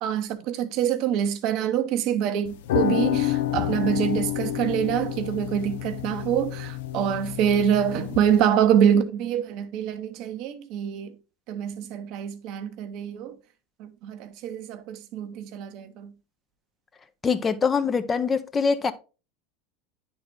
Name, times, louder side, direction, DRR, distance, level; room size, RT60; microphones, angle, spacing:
voice 1, 0.0-11.2 11.5-13.3 13.8-16.1, right 9 dB, 55° right, 0.8 m, -25 dB
sound 1, 2.4-8.4, left 11 dB, 70° left, 0.6 m, -29 dB
voice 2, 17.2-18.9, left 5 dB, 25° left, 0.6 m, -23 dB
9.6 x 4.1 x 3.6 m
hypercardioid pair, 80°, 0 cm